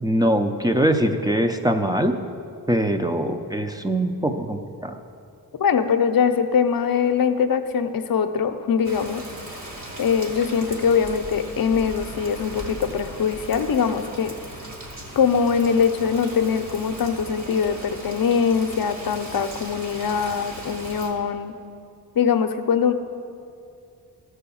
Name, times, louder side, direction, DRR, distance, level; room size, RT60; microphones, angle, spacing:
voice 1, 0.0-2.2 2.7-4.9, right 1 dB, 10° right, 5 dB, 0.5 m, -22 dB
voice 2, 5.6-9.2 10.0-14.3 15.2-21.5 22.1-22.9, left 6 dB, 60° left, 8 dB, 0.7 m, -22 dB
Rain, 8.8-21.1, right 1 dB, 45° right, 1.8 m, -38 dB
13.5 x 4.9 x 7.0 m, 2.5 s
wide cardioid pair, 110°, 38 cm